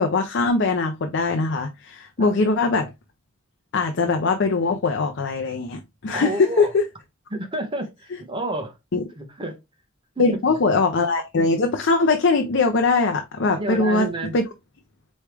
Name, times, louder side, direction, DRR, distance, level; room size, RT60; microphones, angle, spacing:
voice 1, 0.0-2.9 3.7-6.8 8.9-9.0 10.2-14.1 14.3-14.4, left 3 dB, 60° left, 0.6 m, -21 dB
voice 2, 6.1-6.7 7.3-8.8 9.2-9.6 10.2-10.4 13.5-14.3, right 2 dB, 25° right, 1.1 m, -30 dB
4.6 x 3.1 x 3.3 m
head